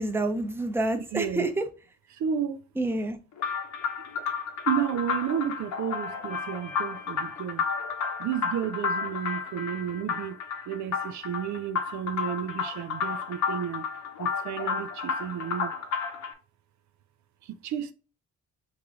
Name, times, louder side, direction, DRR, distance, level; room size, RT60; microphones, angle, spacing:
voice 1, 0.0-1.7 2.8-3.2, right 2 dB, 10° right, 0.7 m, -28 dB
voice 2, 0.9-1.5 2.1-2.6 4.7-7.6 8.2-10.4 10.7-13.9 14.2-15.7 17.4-17.9, right 9 dB, 70° right, 0.5 m, -32 dB
sound 1, 3.4-16.3, left 6 dB, 70° left, 1.1 m, -32 dB
3.6 x 3.2 x 3.7 m
cardioid pair, 90°, 30 cm